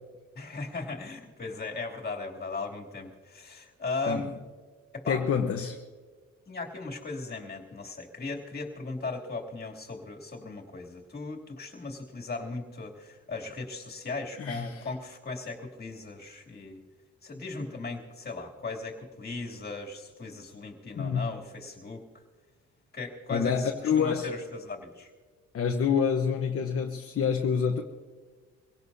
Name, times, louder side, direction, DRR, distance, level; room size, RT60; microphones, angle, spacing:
voice 1, 0.3-4.3 4.9-5.2 6.5-16.8 17.2-22.0 22.9-25.1, left 3 dB, 30° left, 2.9 m, -37 dB
voice 2, 5.1-5.8 14.4-14.8 21.0-21.3 23.3-24.3 25.5-27.8, left 6 dB, 50° left, 1.1 m, -27 dB
24.5 x 17.5 x 2.8 m
cardioid pair, 90°, 30 cm